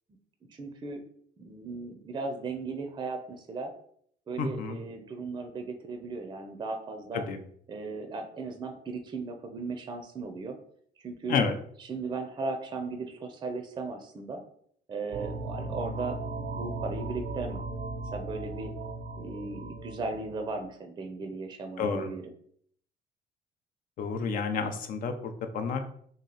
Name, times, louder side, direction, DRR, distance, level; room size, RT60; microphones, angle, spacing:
voice 1, 0.5-1.0 1.4-3.7 4.3-7.2 7.7-10.6 11.0-11.4 11.8-14.4 14.9-17.6 18.1-18.7 19.2-22.3, right 3 dB, 25° right, 6 dB, 0.5 m, -37 dB
voice 2, 4.4-4.8 7.1-7.4 11.3-11.5 21.8-22.1 24.0-25.8, left 5 dB, 55° left, 7 dB, 0.6 m, -30 dB
sound 1, 15.1-20.6, right 2 dB, 70° right, 0.5 m, -37 dB
2.9 x 2.7 x 3.9 m, 0.62 s
cardioid pair, 110°, 17 cm